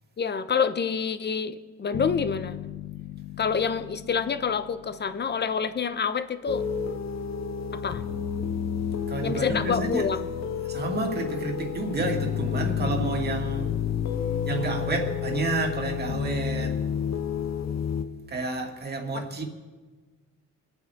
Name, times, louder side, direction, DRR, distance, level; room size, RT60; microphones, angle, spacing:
voice 1, 0.2-2.6 3.4-6.6 7.7-8.0 9.2-10.3, left 6 dB, 35° left, 0.9 m, -27 dB
sound 1, 1.9-5.9, left 14 dB, 80° left, 0.7 m, -39 dB
sound 2, 6.5-18.0, left 8 dB, 60° left, 1.0 m, -30 dB
voice 2, 9.1-10.1 10.7-13.7 14.4-16.8 18.3-19.4, right 3 dB, 35° right, 2.4 m, -30 dB
25.0 x 9.2 x 3.6 m
cardioid pair, 90°, 30 cm